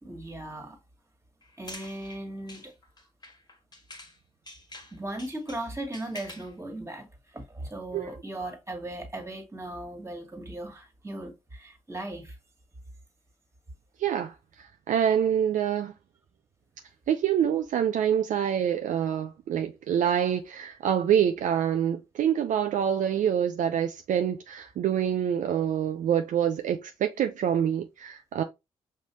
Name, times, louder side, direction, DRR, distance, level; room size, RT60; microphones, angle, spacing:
voice 1, 0.0-0.8 1.6-2.7 4.9-12.4, right 1 dB, 15° right, 1.8 m, -38 dB
sound 1, 1.4-4.2 4.5-6.5, left 2 dB, 30° left, 1.5 m, -46 dB
voice 2, 14.0-15.9 17.1-28.4, right 9 dB, 60° right, 0.5 m, -26 dB
5.5 x 2.6 x 3.0 m
hypercardioid pair, 40°, 15 cm